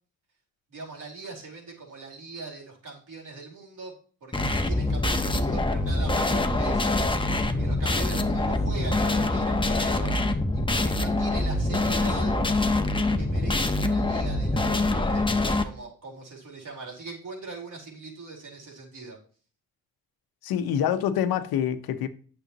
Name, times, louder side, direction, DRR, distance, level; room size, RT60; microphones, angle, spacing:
voice 1, 0.7-3.9 4.2-7.0 7.5-10.1 10.5-12.4 13.2-19.2, right 3 dB, 60° right, 4.3 m, -41 dB
sound 1, 4.3-15.6, left 2 dB, 15° left, 1.0 m, -25 dB
voice 2, 20.4-22.1, left 9 dB, 80° left, 0.8 m, -26 dB
9.0 x 6.9 x 3.0 m
supercardioid pair, 60°, 36 cm